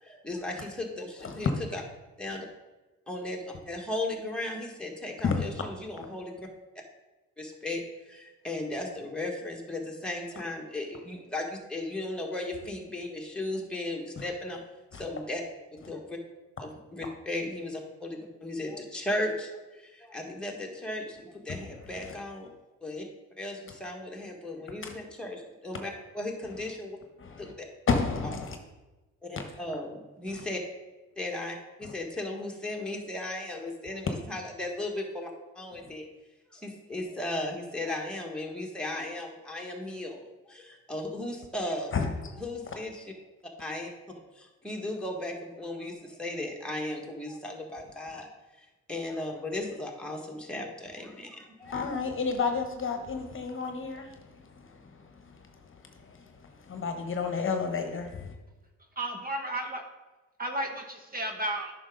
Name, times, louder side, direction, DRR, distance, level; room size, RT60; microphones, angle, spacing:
voice 1, 0.0-1.8 2.2-2.5 3.1-6.5 7.4-7.8 8.1-14.6 14.9-15.4 15.9-16.2 16.6-22.5 22.8-23.1 23.4-27.0 27.4-27.7 29.2-30.6 31.2-35.3 35.6-36.0 36.5-41.9 42.4-43.1 43.6-43.9 44.4-48.3 48.9-52.0, left 1 dB, 5° left, 0 dB, 1.8 m, -36 dB
voice 2, 27.9-28.4 41.9-42.1 51.7-54.0 56.8-58.0, left 5 dB, 40° left, 5 dB, 1.1 m, -29 dB
voice 3, 59.0-59.8 60.4-61.7, right 1 dB, 30° right, 4 dB, 1.1 m, -33 dB
9.4 x 6.0 x 3.9 m, 1.1 s
cardioid pair, 90°, 30 cm